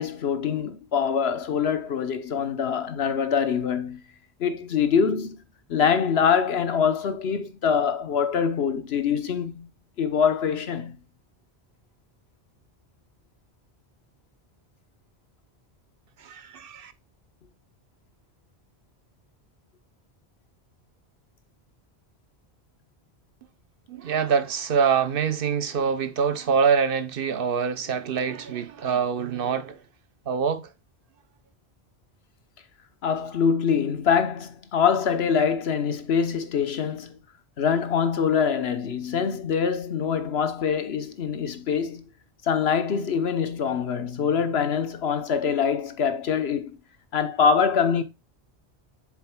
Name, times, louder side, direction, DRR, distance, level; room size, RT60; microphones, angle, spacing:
voice 1, 0.0-4.0 4.4-5.4 5.7-9.7 10.0-11.0 33.0-37.2 37.6-42.1 42.4-46.8 47.1-48.0, left 6 dB, 75° left, 1.2 m, -24 dB
voice 2, 16.2-16.9 23.9-29.8 30.3-30.7, right 6 dB, 60° right, 1.0 m, -25 dB
7.5 x 7.2 x 2.3 m
omnidirectional pair, 1.1 m